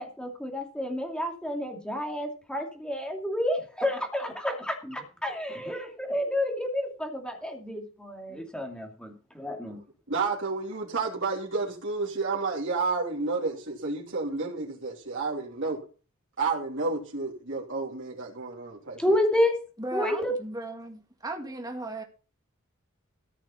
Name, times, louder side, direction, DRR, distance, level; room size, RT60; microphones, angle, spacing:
voice 1, 0.0-9.8 19.0-19.5 19.9-20.3, left 1 dB, 5° left, 2.5 m, -30 dB
voice 2, 10.1-15.8 16.4-19.1, right 4 dB, 60° right, 2.9 m, -30 dB
voice 3, 19.8-22.0, right 2 dB, 20° right, 2.0 m, -36 dB
14.0 x 6.3 x 5.7 m
head